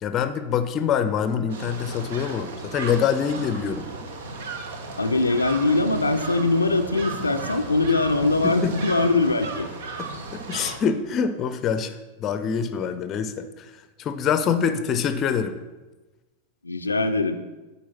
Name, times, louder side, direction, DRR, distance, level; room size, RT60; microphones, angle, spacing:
voice 1, 0.0-3.9 8.4-8.7 10.0-13.7 14.0-15.6, left 7 dB, 30° left, 10 dB, 0.6 m, -25 dB
sound 1, 1.5-10.8, right 3 dB, 60° right, 0.9 m, -35 dB
voice 2, 5.0-9.7 16.6-17.4, left 3 dB, 80° left, 6 dB, 0.4 m, -22 dB
9.3 x 4.4 x 5.8 m, 1.1 s
figure-of-eight pair, 90°, 0 cm